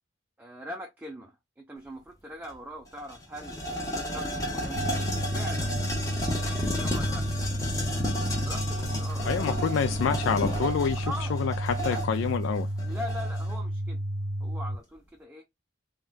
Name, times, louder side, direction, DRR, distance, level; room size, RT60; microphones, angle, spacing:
voice 1, 0.4-3.6 4.0-5.0 5.3-5.8 6.3-7.2 8.4-9.8 11.0-11.4 11.8-12.0 12.8-14.0 14.4-15.4, equal, 10° right, 0.4 m, -41 dB
sound 1, 2.4-2.5 2.9-13.6, equal, 15° left, 0.8 m, -33 dB
sound 2, 4.8-14.8, right 1 dB, 70° right, 0.5 m, -32 dB
voice 2, 9.3-11.1 11.3-12.7, left 6 dB, 80° left, 0.3 m, -27 dB
3.6 x 2.2 x 2.4 m
head